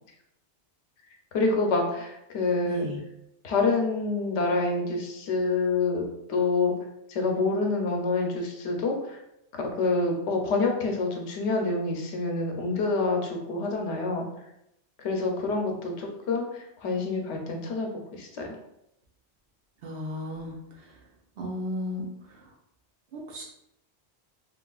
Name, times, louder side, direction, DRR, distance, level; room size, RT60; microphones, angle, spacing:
voice 1, 1.3-2.9 3.4-6.0 6.3-6.7 7.1-9.2 9.5-14.3 15.0-18.6, left 3 dB, 85° left, 2 dB, 0.9 m, -27 dB
voice 2, 2.6-3.0 19.8-20.5 21.4-22.1 23.1-23.4, left 1 dB, 60° right, -3 dB, 0.9 m, -34 dB
3.1 x 2.4 x 2.3 m, 0.82 s
omnidirectional pair, 1.1 m